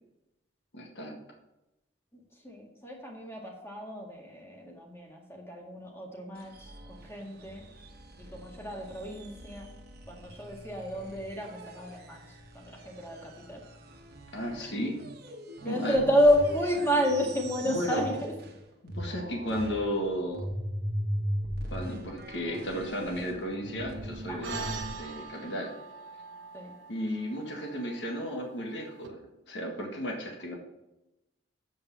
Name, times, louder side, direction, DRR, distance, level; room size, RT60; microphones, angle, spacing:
voice 1, 0.7-1.2 14.3-15.0 15.6-16.0 17.6-18.1 18.8-20.5 21.7-25.7 26.9-29.2 29.5-30.5, equal, 65° left, 1 dB, 1.7 m, -34 dB
voice 2, 2.1-6.5 6.9-7.6 8.2-9.7 10.1-12.2 12.5-13.6 15.6-18.3 24.3-24.4 26.5-26.7, equal, 15° left, 0 dB, 1.8 m, -30 dB
sound 1, 6.3-18.6 18.9-24.9, equal, 55° right, 1.2 m, -40 dB
sound 2, 24.4-29.1, right 4 dB, 80° right, 1.1 m, -43 dB
7.8 x 5.2 x 7.0 m, 0.93 s
head